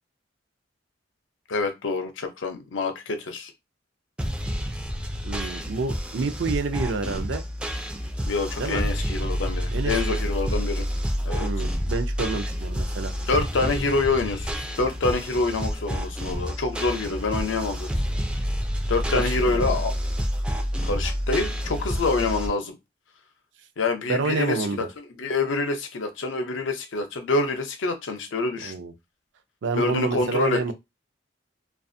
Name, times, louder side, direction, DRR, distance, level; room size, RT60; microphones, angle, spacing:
voice 1, 1.5-3.5 8.3-10.9 11.2-11.5 13.3-17.9 18.9-19.9 20.8-22.8 23.8-28.7 29.8-30.7, left 3 dB, 85° left, 0.6 m, -26 dB
sound 1, 4.2-22.5, equal, 5° right, 0.3 m, -29 dB
voice 2, 5.2-7.4 8.6-8.8 9.7-10.2 11.4-13.1 13.6-13.8 19.1-19.8 24.1-24.9 28.6-28.9 29.6-30.7, right 4 dB, 70° right, 0.4 m, -29 dB
2.4 x 2.3 x 2.6 m
head